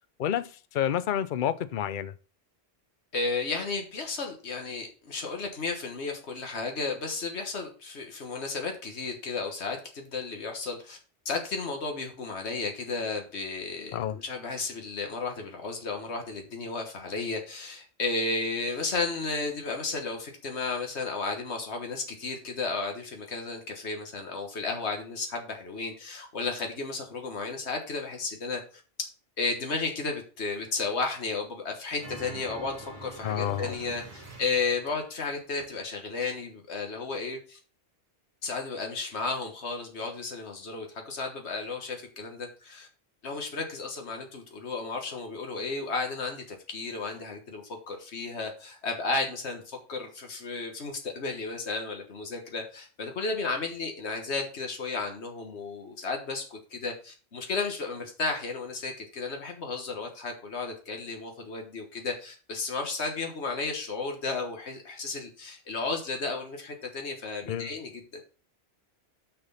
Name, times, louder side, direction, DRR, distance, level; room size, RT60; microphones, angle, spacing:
voice 1, 0.2-2.1 13.9-14.2 33.2-33.7 67.5-67.8, left 10 dB, 55° left, 0.7 m, -29 dB
voice 2, 3.1-11.0 11.2-28.6 29.4-37.6 38.4-42.9 43.2-68.2, left 3 dB, 85° left, 1.7 m, -33 dB
sound 1, 32.0-35.2, right 2 dB, 45° right, 1.8 m, -45 dB
6.5 x 6.2 x 5.6 m
omnidirectional pair, 1.1 m